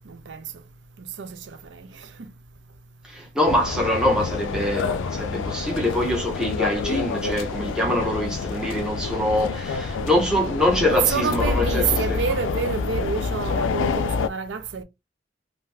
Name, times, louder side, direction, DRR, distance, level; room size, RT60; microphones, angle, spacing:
voice 1, 0.1-0.4 1.0-2.3 10.9-14.8, right 6 dB, 75° right, 0.5 m, -28 dB
voice 2, 3.0-11.8 12.1-12.2, left 1 dB, 5° right, 0.8 m, -24 dB
sound 1, 3.5-14.3, left 4 dB, 90° left, 0.3 m, -27 dB
2.6 x 2.2 x 3.2 m
head